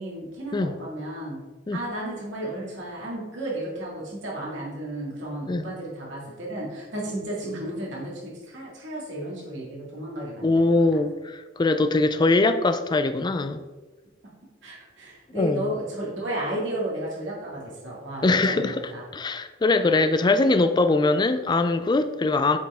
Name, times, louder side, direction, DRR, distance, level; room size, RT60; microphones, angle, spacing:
voice 1, 0.0-1.4 1.7-10.7 14.2-14.3 14.6-19.0, right 1 dB, 75° right, 2.2 m, -33 dB
voice 2, 10.4-13.6 15.3-15.7 18.2-18.8 19.1-22.6, left 3 dB, 25° left, 0.4 m, -22 dB
7.5 x 4.6 x 3.5 m
head